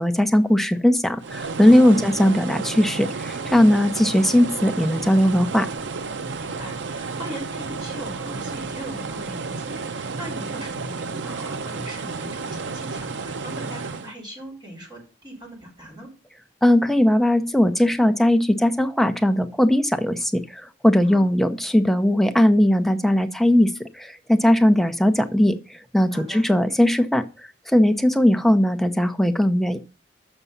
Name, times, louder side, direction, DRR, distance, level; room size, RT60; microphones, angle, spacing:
voice 1, 0.0-5.7 16.6-27.3 27.7-29.8, left 1 dB, ahead, 7 dB, 0.6 m, -19 dB
sound 1, 1.2-14.1, right 4 dB, 80° right, 0.6 m, -32 dB
voice 2, 6.4-16.1 21.0-21.3 26.1-26.4, right 1 dB, 25° right, -2 dB, 4.5 m, -39 dB
7.0 x 6.0 x 5.5 m, 0.32 s
head